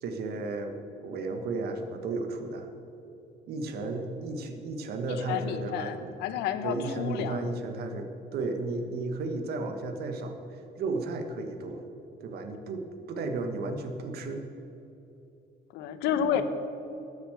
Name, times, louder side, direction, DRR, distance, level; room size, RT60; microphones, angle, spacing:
voice 1, 0.0-0.8 1.0-2.7 3.5-6.1 6.6-11.8 12.2-14.4 16.3-16.4, right 3 dB, 70° right, 6 dB, 1.6 m, -34 dB
voice 2, 5.1-7.4 15.7-16.4, left 9 dB, 90° left, 10 dB, 0.9 m, -30 dB
13.0 x 7.3 x 7.9 m, 2.9 s
cardioid pair, 110°, 17 cm